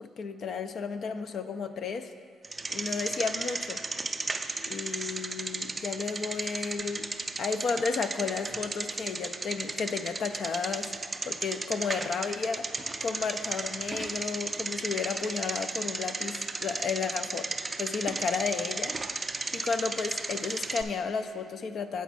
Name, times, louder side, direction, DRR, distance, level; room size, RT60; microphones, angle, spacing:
voice 1, 0.0-2.1 2.7-3.8 4.7-7.1 7.4-10.9 11.3-12.7 13.0-17.5 17.8-18.9 19.5-22.0, left 5 dB, 60° left, 9 dB, 0.4 m, -33 dB
Bicycle, 2.4-20.8, right 3 dB, 25° right, 0.4 m, -35 dB
8.2 x 4.1 x 6.0 m, 2.3 s
cardioid pair, 90°, 0 cm